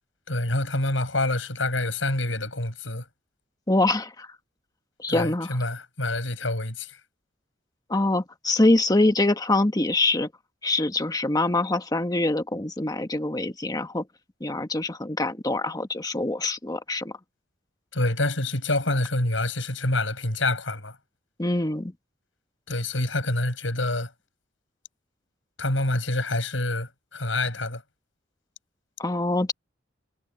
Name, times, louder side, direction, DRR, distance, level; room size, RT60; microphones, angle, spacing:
voice 1, 0.3-3.0 5.1-7.0 17.9-20.9 22.7-24.1 25.6-27.8, left 2 dB, 80° left, 7.6 m, -27 dB
voice 2, 3.7-4.3 5.0-5.6 7.9-10.3 10.6-14.0 14.4-17.1 21.4-21.9 29.0-29.5, left 2 dB, 20° left, 1.4 m, -24 dB
head